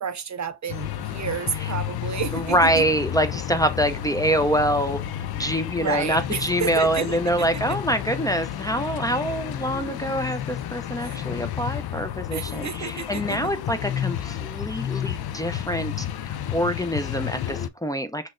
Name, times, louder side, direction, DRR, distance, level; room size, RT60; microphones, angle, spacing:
voice 1, 0.0-2.8 5.8-7.8 11.0-11.3 12.3-13.4, right 7 dB, 45° right, 0.5 m, -31 dB
sound 1, 0.7-17.7, left 11 dB, 65° left, 0.5 m, -31 dB
voice 2, 2.3-5.0 5.3-16.1 16.5-18.3, equal, 10° left, 0.5 m, -25 dB
5.9 x 2.2 x 2.4 m
cardioid pair, 55°, 41 cm